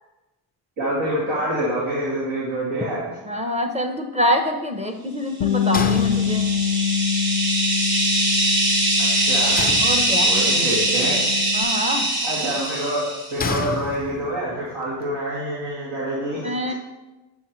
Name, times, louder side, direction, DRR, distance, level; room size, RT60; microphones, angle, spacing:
voice 1, 0.8-3.2 9.0-9.6 10.2-11.2 12.2-13.0 13.3-16.5, right 1 dB, 80° right, -7 dB, 2.2 m, -26 dB
voice 2, 3.3-6.5 9.8-10.4 11.5-12.1 16.4-16.7, equal, 15° right, 5 dB, 0.7 m, -25 dB
Bass guitar, 5.4-11.7, left 7 dB, 70° left, 0.6 m, -25 dB
sound 1, 5.6-13.4, right 1 dB, 55° right, 1.7 m, -22 dB
sound 2, 5.7-6.8 9.6-10.6 13.4-14.5, left 4 dB, 20° left, 0.5 m, -29 dB
7.2 x 5.8 x 3.1 m, 1.1 s
cardioid pair, 65°, 47 cm